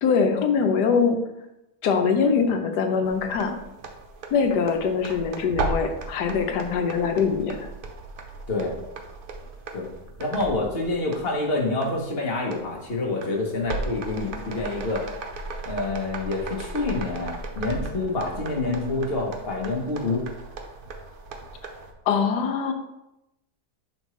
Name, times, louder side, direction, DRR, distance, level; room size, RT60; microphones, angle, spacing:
voice 1, 0.0-1.2 1.8-3.6 4.3-7.7 8.6-8.7 22.1-22.7, left 5 dB, 85° left, 5 dB, 1.3 m, -23 dB
sound 1, 3.0-21.9, right 3 dB, 60° right, 0.5 m, -36 dB
voice 2, 10.2-15.1 15.6-20.2, left 2 dB, 40° left, -1 dB, 1.2 m, -27 dB
5.8 x 5.2 x 3.1 m, 0.89 s
omnidirectional pair, 1.7 m